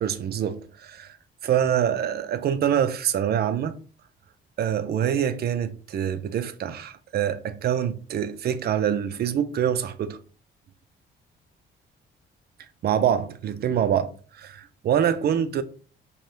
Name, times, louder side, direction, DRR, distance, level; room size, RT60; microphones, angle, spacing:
voice 1, 0.0-1.2 1.4-3.8 4.6-10.2 12.8-15.6, right 9 dB, 55° right, 0.4 m, -25 dB
2.7 x 2.2 x 3.2 m
cardioid pair, 90°, 20 cm